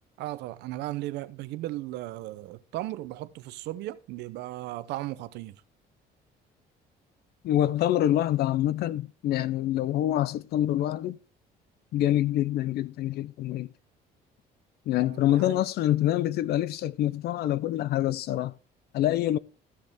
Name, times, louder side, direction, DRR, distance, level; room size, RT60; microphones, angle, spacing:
voice 1, 0.2-5.6 15.0-15.6, right 16 dB, 85° right, 0.8 m, -36 dB
voice 2, 7.4-11.2 11.9-13.7 14.9-18.5 18.9-19.4, left 13 dB, 70° left, 0.6 m, -26 dB
14.0 x 6.6 x 3.5 m
cardioid pair, 110°, 17 cm